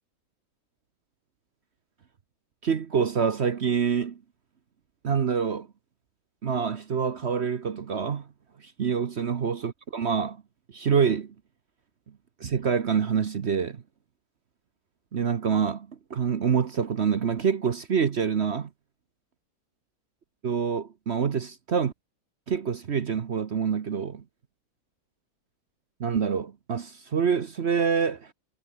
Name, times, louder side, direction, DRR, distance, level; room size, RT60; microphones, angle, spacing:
voice 1, 2.6-4.2 5.0-5.7 6.4-8.3 8.6-10.4 10.7-11.3 12.4-13.8 15.1-18.7 20.4-21.9 22.5-24.2 26.0-28.3, right 6 dB, 50° right, 1.1 m, -26 dB
omnidirectional pair, 1.7 m